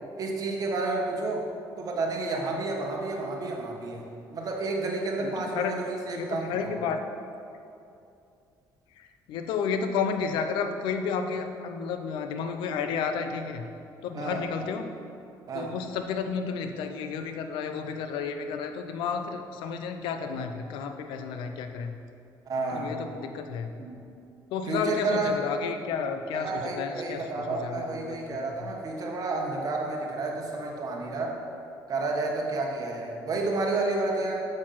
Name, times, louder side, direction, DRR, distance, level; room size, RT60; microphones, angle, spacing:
voice 1, 0.2-1.5 1.8-4.1 4.3-6.8 14.1-14.4 15.5-15.7 22.5-22.9 23.8-24.0 24.7-25.4 26.3-31.4 31.9-34.5, right 3 dB, 50° right, 0 dB, 1.5 m, -30 dB
voice 2, 5.2-5.7 6.1-7.0 8.9-13.7 14.0-14.9 15.5-21.9 22.7-23.7 24.5-28.7, left 6 dB, 85° left, 7 dB, 0.7 m, -32 dB
6.6 x 6.2 x 5.9 m, 2.6 s
cardioid pair, 90°, 8 cm